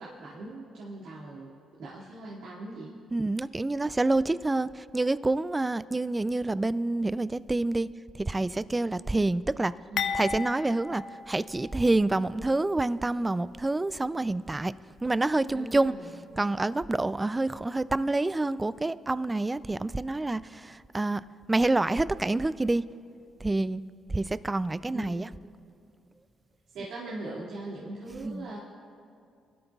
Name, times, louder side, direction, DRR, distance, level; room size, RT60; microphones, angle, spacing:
voice 1, 0.0-3.0 9.9-10.3 15.5-16.2 24.0-24.1 24.9-25.4 26.7-28.6, right 2 dB, 85° right, -8 dB, 2.2 m, -41 dB
voice 2, 3.1-7.9 8.2-9.7 10.1-14.7 15.0-15.9 16.4-21.2 21.5-22.8 23.4-23.8 24.1-25.3 28.2-28.5, right 2 dB, 15° right, 16 dB, 0.3 m, -27 dB
sound 1, 10.0-12.1 12.5-12.6 13.5-13.7, left 6 dB, 75° left, 0.6 m, -34 dB
22.5 x 12.5 x 2.3 m, 2.4 s
cardioid pair, 90°, 0 cm